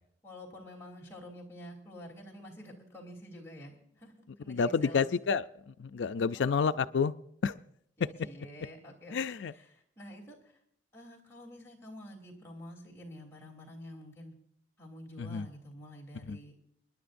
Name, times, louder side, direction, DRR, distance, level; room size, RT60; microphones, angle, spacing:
voice 1, 0.2-4.1 4.4-5.1 6.3-6.8 8.0-9.2 9.5-10.4 10.9-14.3 14.8-16.5, equal, 15° left, -3 dB, 3.2 m, -48 dB
voice 2, 4.5-7.1 7.4-7.6 8.0-8.1 9.1-9.5 15.2-15.5 16.3-16.4, left 5 dB, 85° left, 11 dB, 0.4 m, -29 dB
28.0 x 11.0 x 2.6 m, 0.70 s
head